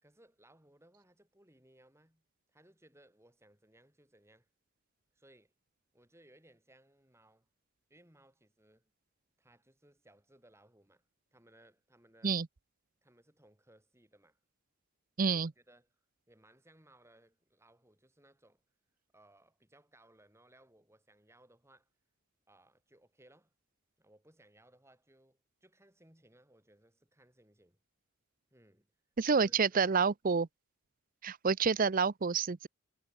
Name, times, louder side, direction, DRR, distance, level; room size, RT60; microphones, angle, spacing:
voice 1, 0.0-2.2 2.5-4.5 5.1-5.5 5.9-7.5 7.9-8.9 9.4-11.0 11.3-12.4 13.0-14.4 15.2-15.9 16.3-18.6 19.1-21.9 22.5-23.5 24.0-27.8 28.5-28.9 29.3-30.0, right 1 dB, 10° right, 5.4 m, -64 dB
voice 2, 15.2-15.5 29.2-30.5 31.2-32.7, right 5 dB, 40° right, 0.5 m, -28 dB
head